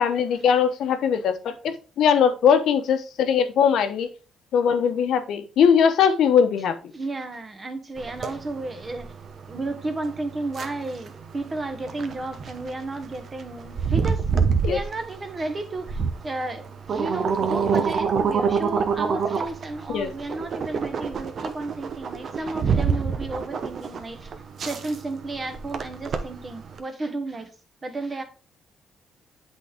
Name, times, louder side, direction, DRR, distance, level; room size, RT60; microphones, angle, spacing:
voice 1, 0.0-4.1 4.5-6.8 14.6-14.8 19.9-20.1, left 7 dB, 75° left, 0.9 m, -20 dB
voice 2, 6.9-9.1 9.5-14.2 14.6-24.3 24.6-27.5 27.8-28.2, right 2 dB, 30° right, 1.3 m, -33 dB
sound 1, 8.0-26.8, right 5 dB, 55° right, 0.9 m, -27 dB
8.0 x 4.1 x 3.5 m
cardioid pair, 90°, 0 cm